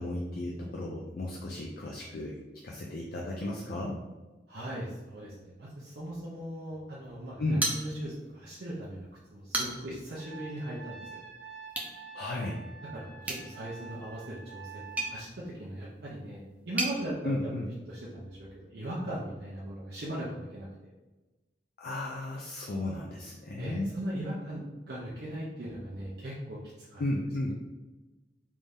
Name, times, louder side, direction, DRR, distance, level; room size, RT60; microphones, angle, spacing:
voice 1, 0.0-2.4 2.6-4.0 7.4-7.7 12.1-12.6 17.2-17.7 21.8-23.9 27.0-27.5, left 1 dB, 55° left, -2 dB, 0.4 m, -34 dB
voice 2, 4.5-11.2 12.9-17.6 17.9-20.7 23.6-27.0, right 1 dB, 65° right, -6 dB, 0.7 m, -39 dB
sound 1, 7.6-8.4 8.7-8.8 9.3-10.0 11.7-12.0 13.2-17.0, right 2 dB, 10° right, 0.6 m, -36 dB
Trumpet, 10.2-15.2, right 6 dB, 40° right, 1.0 m, -47 dB
3.4 x 2.7 x 3.4 m, 1.1 s
head